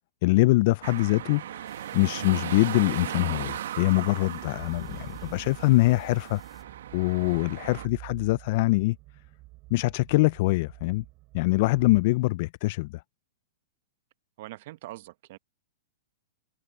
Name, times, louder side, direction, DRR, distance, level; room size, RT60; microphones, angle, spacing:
voice 1, 0.2-6.4 6.9-9.0 9.7-11.0 11.3-13.0, left 21 dB, 50° left, 0.4 m, -24 dB
sound 1, 0.8-7.9, right 11 dB, 75° right, 1.6 m, -37 dB
sound 2, 1.6-6.6, left 4 dB, 10° left, 5.7 m, -61 dB
sound 3, 4.4-12.0, right 22 dB, 40° right, 4.8 m, -48 dB
voice 2, 14.4-15.4, right 17 dB, 55° right, 1.0 m, -42 dB
hypercardioid pair, 130°, 0 cm